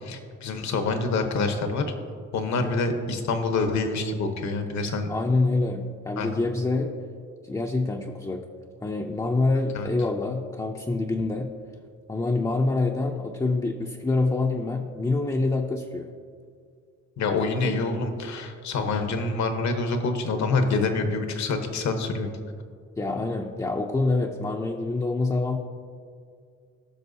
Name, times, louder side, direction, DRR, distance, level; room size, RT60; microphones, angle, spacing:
voice 1, 0.0-1.8 2.3-5.1 6.2-6.5 9.7-9.9 17.2-22.3, left 3 dB, 65° left, 6 dB, 1.1 m, -26 dB
voice 2, 5.1-6.9 7.4-8.4 8.8-11.5 12.1-16.1 23.0-25.6, left 3 dB, 10° left, 1 dB, 0.5 m, -26 dB
15.5 x 6.1 x 2.7 m, 2.2 s
cardioid pair, 90°, 30 cm